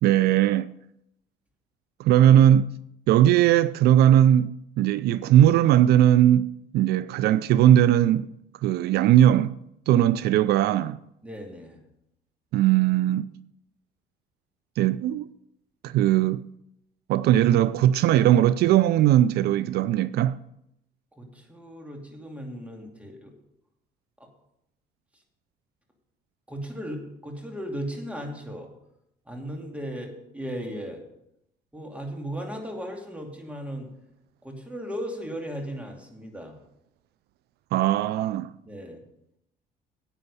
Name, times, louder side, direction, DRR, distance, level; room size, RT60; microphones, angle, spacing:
voice 1, 0.0-0.7 2.0-2.7 3.1-8.3 8.6-9.6 9.9-11.0 12.5-13.3 14.8-15.3 15.8-16.5 17.1-20.4 37.7-38.5, right 11 dB, 70° right, 0.4 m, -19 dB
voice 2, 11.2-11.8 21.1-23.3 24.2-24.3 26.5-28.7 29.3-31.0 31.7-33.9 34.4-36.6 38.6-39.0, equal, 10° right, 2.4 m, -36 dB
9.8 x 9.0 x 5.5 m
cardioid pair, 110°, 17 cm